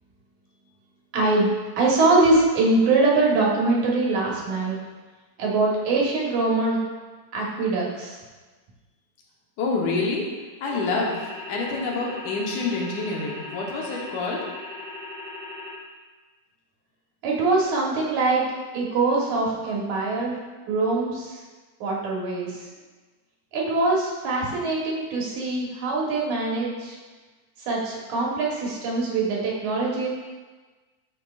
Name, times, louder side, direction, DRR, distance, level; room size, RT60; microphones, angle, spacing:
voice 1, 1.1-4.8 5.4-6.8 7.3-8.2 17.2-18.4 18.7-20.4 20.7-21.4 21.8-22.6 23.5-27.0 27.7-30.1, right 3 dB, 80° right, -3 dB, 2.6 m, -23 dB
voice 2, 9.6-10.3 10.6-14.5, left 3 dB, 80° left, -2 dB, 2.4 m, -27 dB
sound 1, 10.7-15.7, left 2 dB, 65° left, 1.3 m, -38 dB
6.9 x 6.4 x 2.4 m, 1.3 s
omnidirectional pair, 3.4 m